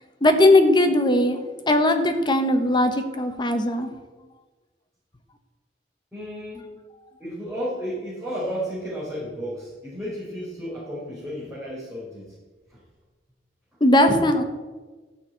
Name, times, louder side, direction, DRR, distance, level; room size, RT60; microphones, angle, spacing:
voice 1, 0.2-1.4 1.7-3.9 13.8-14.4, left 1 dB, 25° left, 7 dB, 1.0 m, -19 dB
voice 2, 6.1-6.7 7.2-12.3 12.7-12.8, equal, ahead, -11 dB, 4.6 m, -33 dB
13.5 x 6.3 x 8.3 m, 1.3 s
head